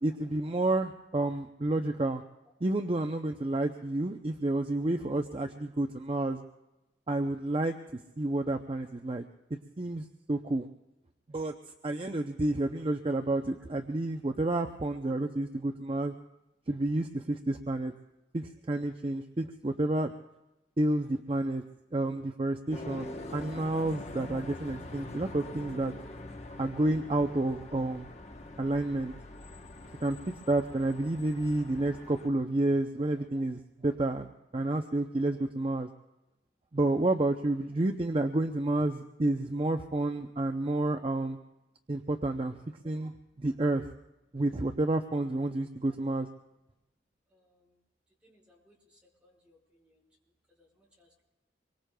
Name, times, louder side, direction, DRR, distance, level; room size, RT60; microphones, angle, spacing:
voice 1, 0.0-2.2 2.6-6.4 7.1-9.2 9.5-10.7 11.3-11.5 11.8-16.1 16.7-17.9 18.3-20.1 20.8-21.6 21.9-25.9 26.6-28.1 28.6-29.1 30.0-35.9 36.7-41.4 41.9-42.6 42.8-43.9 44.3-46.3, right 2 dB, 30° right, 5 dB, 0.6 m, -30 dB
sound 1, 22.7-32.3, left 2 dB, 40° left, 1.0 m, -44 dB
voice 2, 47.3-47.6 48.2-48.7 49.2-50.0 50.6-51.2, left 1 dB, 5° right, -3 dB, 5.1 m, -66 dB
25.5 x 23.0 x 2.3 m, 0.98 s
head